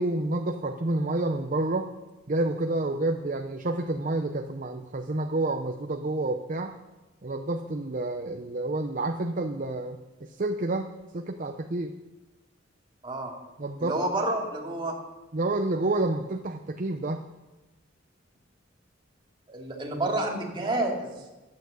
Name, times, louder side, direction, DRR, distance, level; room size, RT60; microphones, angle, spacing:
voice 1, 0.0-1.9 2.3-6.7 7.2-10.9 11.1-11.9 13.6-14.0 15.3-17.2, right 2 dB, 40° right, 5 dB, 0.7 m, -29 dB
voice 2, 13.8-15.0 19.5-21.2, right 2 dB, 25° right, -1 dB, 2.4 m, -29 dB
12.5 x 8.6 x 8.0 m, 1.1 s
head